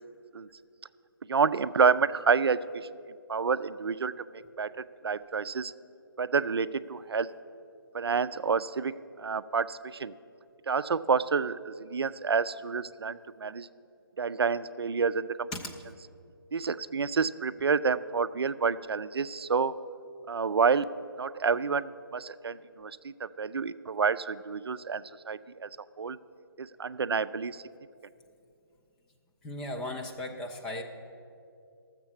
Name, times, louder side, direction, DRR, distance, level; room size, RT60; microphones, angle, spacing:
voice 1, 1.3-2.9 3.3-4.1 4.6-5.7 6.2-7.3 7.9-10.1 10.7-13.7 14.2-15.5 16.5-19.7 20.3-20.9 21.2-25.7 26.0-26.2 26.6-27.6, right 5 dB, 85° right, 14 dB, 0.4 m, -29 dB
voice 2, 29.4-30.8, left 1 dB, 5° left, 2 dB, 0.3 m, -36 dB
12.0 x 7.4 x 7.1 m, 2.5 s
hypercardioid pair, 155°, 13 cm